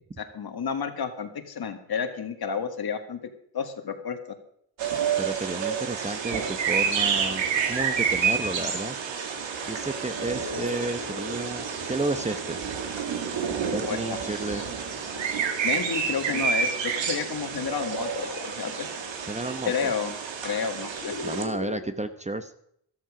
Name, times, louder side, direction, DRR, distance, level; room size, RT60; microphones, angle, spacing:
voice 1, 0.2-3.2 3.5-4.2 13.8-14.7 15.6-18.3 18.6-18.9 19.7-20.1 20.4-21.1, left 6 dB, 55° left, 7 dB, 2.0 m, -31 dB
sound 1, 4.8-21.4, right 6 dB, 90° right, 2.3 m, -29 dB
voice 2, 5.2-7.4 7.7-9.0 9.7-12.6 13.7-14.7 19.3-19.9 21.2-22.5, right 2 dB, 15° right, 9 dB, 0.9 m, -32 dB
sound 2, 9.8-21.8, left 4 dB, 75° left, 3.6 m, -41 dB
13.5 x 13.5 x 5.0 m, 0.69 s
cardioid pair, 110°, 44 cm